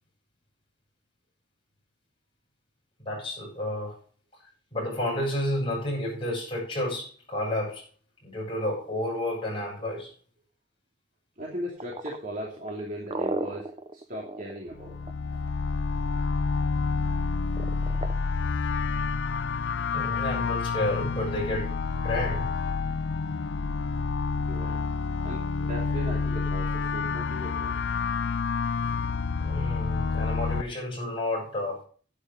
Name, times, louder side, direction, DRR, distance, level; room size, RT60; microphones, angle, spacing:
voice 1, 3.1-3.9 4.7-7.8 8.2-10.1 19.9-22.5 29.4-31.8, left 1 dB, 30° left, -2 dB, 7.8 m, -31 dB
voice 2, 11.4-14.9 24.5-24.8 25.2-27.8, equal, 45° right, -3 dB, 2.8 m, -38 dB
sound 1, 11.8-15.5 17.6-18.1, right 2 dB, 30° right, 0.9 m, -33 dB
sound 2, 14.7-30.6, left 4 dB, 75° left, 0.5 m, -28 dB
11.0 x 9.8 x 5.3 m, 0.42 s
head